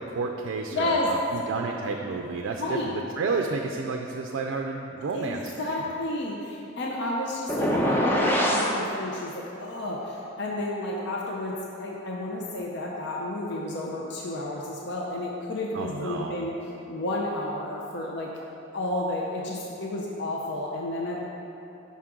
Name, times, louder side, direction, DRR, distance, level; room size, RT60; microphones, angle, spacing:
voice 1, 0.0-5.9 15.7-16.4, right 4 dB, 75° right, 2 dB, 0.4 m, -31 dB
voice 2, 0.7-1.1 2.6-2.9 5.1-16.6 16.9-18.3 18.7-21.3, left 1 dB, 60° left, -2 dB, 0.6 m, -31 dB
sound 1, 7.5-8.7, equal, 10° left, 0.5 m, -23 dB
5.9 x 5.7 x 3.7 m, 2.8 s
head